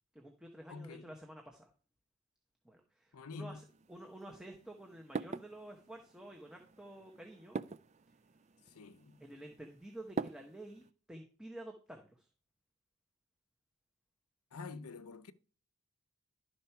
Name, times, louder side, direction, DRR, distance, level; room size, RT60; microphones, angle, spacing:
voice 1, 0.1-1.7 2.6-7.6 9.2-12.3, right 1 dB, 5° right, 0.9 m, -50 dB
voice 2, 0.7-1.1 3.1-3.6 8.7-9.2 14.5-15.3, left 4 dB, 90° left, 0.6 m, -47 dB
sound 1, 3.6-10.9, right 4 dB, 30° right, 0.3 m, -46 dB
11.5 x 4.3 x 5.7 m
head